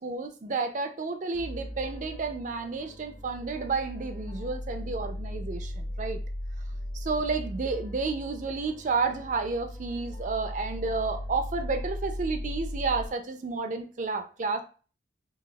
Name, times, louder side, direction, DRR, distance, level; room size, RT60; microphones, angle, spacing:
voice 1, 0.0-6.2 6.9-14.6, right 4 dB, 40° right, 7 dB, 0.4 m, -31 dB
sound 1, 1.3-13.1, equal, 25° left, 0.7 m, -37 dB
4.0 x 2.3 x 2.3 m, 0.37 s
head